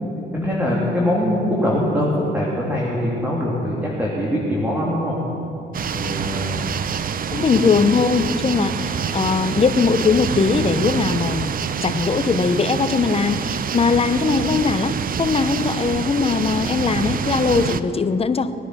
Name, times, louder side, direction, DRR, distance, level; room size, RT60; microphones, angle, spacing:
voice 1, 0.3-5.2 5.9-6.5 7.5-7.6, equal, 10° right, -5 dB, 3.0 m, -22 dB
sound 1, 5.7-17.8, right 7 dB, 45° right, 0.6 m, -26 dB
voice 2, 7.3-11.5 11.8-18.5, left 5 dB, 30° left, 11 dB, 0.8 m, -20 dB
21.0 x 10.0 x 6.3 m, 2.7 s
cardioid pair, 90°, 20 cm